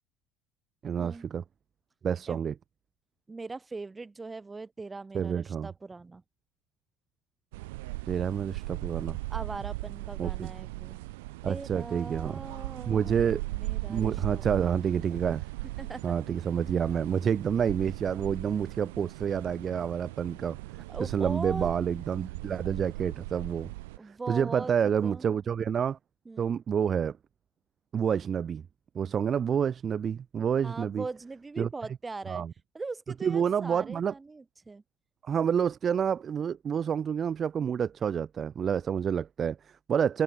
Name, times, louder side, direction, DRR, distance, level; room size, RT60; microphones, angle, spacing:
voice 1, 0.8-1.4 2.0-2.5 5.1-5.7 8.1-9.2 10.2-10.5 11.4-12.4 12.9-13.4 13.9-15.4 16.0-20.6 21.0-23.7 24.0-26.0 26.4-27.2 27.9-28.6 28.9-31.0 31.6-31.7 32.3-32.5 33.2-34.1 35.2-40.2, right 7 dB, 40° right, 0.6 m, -28 dB
voice 2, 3.3-6.2 9.3-11.0 11.5-14.8 15.1-15.4 15.8-16.1 20.9-21.7 24.0-25.4 26.2-26.6 30.6-32.4 32.7-34.8, right 3 dB, 20° right, 3.1 m, -41 dB
sound 1, 7.5-24.0, right 22 dB, 90° right, 4.6 m, -38 dB
supercardioid pair, 100°, 0 cm